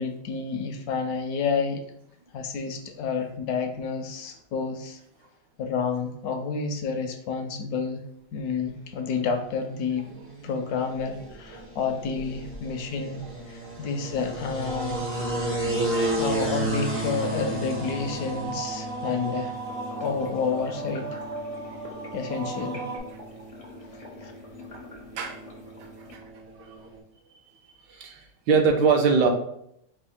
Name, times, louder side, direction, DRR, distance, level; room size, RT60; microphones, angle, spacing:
voice 1, 0.0-1.8 2.3-5.0 5.6-8.0 8.3-10.1 10.4-13.2 13.5-15.0 16.2-19.6 20.0-21.2 22.1-22.8 24.2-24.3, left 5 dB, 70° left, 5 dB, 1.0 m, -29 dB
sound 1, 8.9-27.0, right 1 dB, 20° right, 0.4 m, -34 dB
sound 2, 14.7-23.0, right 2 dB, 50° right, 0.7 m, -36 dB
sound 3, 19.5-26.2, left 3 dB, 55° left, 0.4 m, -46 dB
voice 2, 25.8-26.2 26.6-26.7 27.3-27.4 27.9-29.3, right 5 dB, 75° right, 3 dB, 1.3 m, -24 dB
5.1 x 2.4 x 3.6 m, 0.72 s
omnidirectional pair, 1.9 m